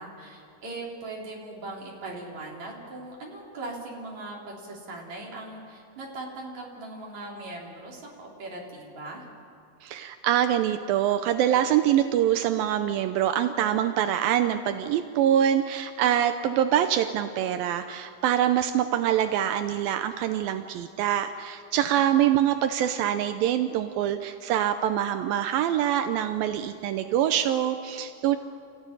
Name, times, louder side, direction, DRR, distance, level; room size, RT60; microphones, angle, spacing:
voice 1, 0.0-9.3 21.7-22.5, right 2 dB, 50° right, -2 dB, 5.0 m, -40 dB
voice 2, 9.8-28.4, right 10 dB, 80° right, 9 dB, 2.5 m, -24 dB
28.0 x 15.0 x 9.9 m, 2.4 s
omnidirectional pair, 4.2 m